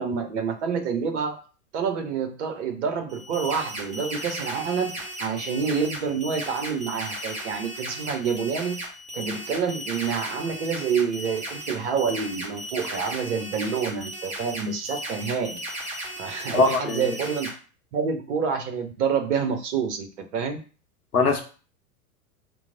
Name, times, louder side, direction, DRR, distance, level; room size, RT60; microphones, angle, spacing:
voice 1, 0.0-1.4 1.7-8.8 9.1-15.6 16.2-17.5 17.9-20.6, right 6 dB, 50° right, 6 dB, 0.7 m, -28 dB
sound 1, 3.1-17.5, right 1 dB, 15° right, 1.1 m, -36 dB
voice 2, 16.5-17.0 21.1-21.4, left 3 dB, 80° left, 4 dB, 0.8 m, -21 dB
3.0 x 2.0 x 3.7 m, 0.36 s
figure-of-eight pair, 95°, 45 cm